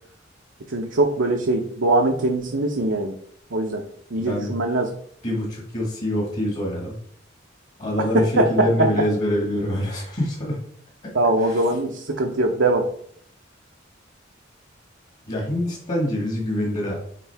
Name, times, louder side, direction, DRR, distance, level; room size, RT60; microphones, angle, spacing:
voice 1, 0.7-3.1 3.5-3.8 4.1-4.9 8.0-8.9 11.1-12.9, right 2 dB, 70° right, 2 dB, 0.7 m, -22 dB
voice 2, 4.2-4.5 5.2-6.9 7.8-10.6 11.0-11.1 11.4-11.7 15.3-16.9, left 1 dB, 40° left, -2 dB, 1.8 m, -25 dB
10.0 x 3.7 x 3.5 m, 0.62 s
head